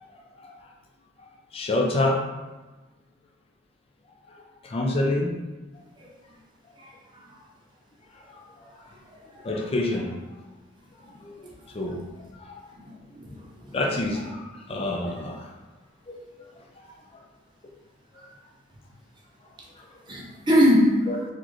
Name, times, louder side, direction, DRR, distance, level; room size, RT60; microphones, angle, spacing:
voice 1, 0.1-0.6 1.2-2.2 4.3-5.4 8.1-8.7 9.4-10.2 11.2-12.0 12.4-12.7 13.7-15.5 16.1-16.6 19.8-19.9 21.1-21.2, left 2 dB, 30° left, 0 dB, 0.4 m, -29 dB
voice 2, 6.8-7.2 12.8-13.7 20.1-21.1, equal, 25° right, -3 dB, 0.7 m, -23 dB
4.0 x 2.4 x 3.0 m, 1.2 s
head